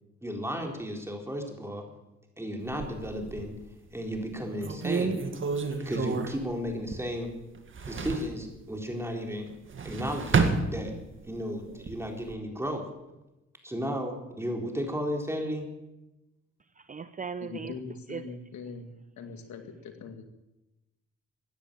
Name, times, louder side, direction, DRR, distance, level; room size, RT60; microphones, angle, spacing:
voice 1, 0.2-1.8 2.4-3.6 3.9-5.2 5.8-7.3 7.9-9.5 9.8-10.9 11.3-12.8 13.6-15.7, equal, 10° right, 4.0 m, -34 dB
sound 1, 2.7-3.6 4.2-4.3 4.6-7.3 7.5-8.4 9.5-11.3 11.7-12.4, right 4 dB, 40° right, 1.9 m, -30 dB
voice 2, 16.8-17.8 18.1-18.4, right 5 dB, 25° right, 0.6 m, -38 dB
voice 3, 17.4-20.2, left 5 dB, 70° left, 2.2 m, -42 dB
16.0 x 10.0 x 8.8 m
cardioid pair, 90°, 30 cm